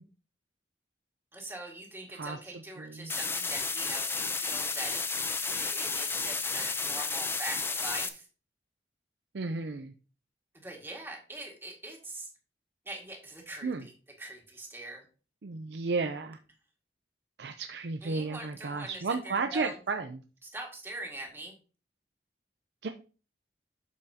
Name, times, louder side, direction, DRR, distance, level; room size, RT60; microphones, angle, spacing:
voice 1, 1.3-5.0 5.5-8.2 10.5-12.3 12.9-13.9 14.2-15.0 18.0-19.7 20.5-21.5, right 2 dB, 15° right, 0 dB, 1.9 m, -42 dB
voice 2, 2.1-3.1 9.3-9.9 13.6-13.9 15.4-16.4 17.4-20.2 22.8-22.9, right 4 dB, 70° right, 7 dB, 0.5 m, -33 dB
sound 1, 3.1-8.1, left 4 dB, 15° left, 0.5 m, -32 dB
8.2 x 6.8 x 2.8 m, 0.36 s
head